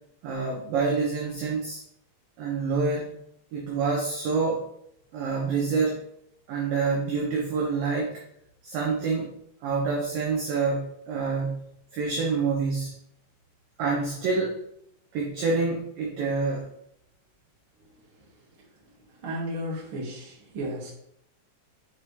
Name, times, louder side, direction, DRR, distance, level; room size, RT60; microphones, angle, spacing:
voice 1, 0.2-1.8 2.4-3.1 3.5-4.6 5.1-6.0 6.5-8.2 8.6-9.3 9.6-11.7 11.9-12.9 13.8-14.6 15.1-16.7, right 4 dB, 75° right, -2 dB, 2.1 m, -27 dB
voice 2, 19.2-20.9, equal, 45° right, -5 dB, 1.8 m, -33 dB
7.3 x 4.8 x 3.2 m, 0.72 s
omnidirectional pair, 5.4 m